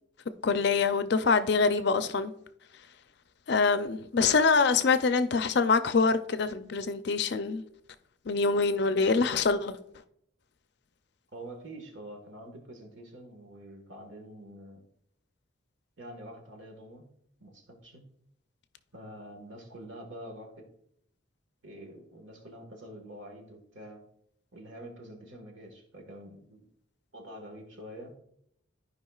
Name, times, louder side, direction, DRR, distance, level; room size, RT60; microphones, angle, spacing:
voice 1, 0.4-2.3 3.5-7.6 8.3-9.8, left 4 dB, 55° left, 0.5 m, -25 dB
voice 2, 11.3-14.8 16.0-17.1 17.4-18.0 18.9-20.5 21.6-24.0 24.5-26.6 27.1-28.1, right 1 dB, 70° right, 1.6 m, -46 dB
14.0 x 5.0 x 2.4 m
head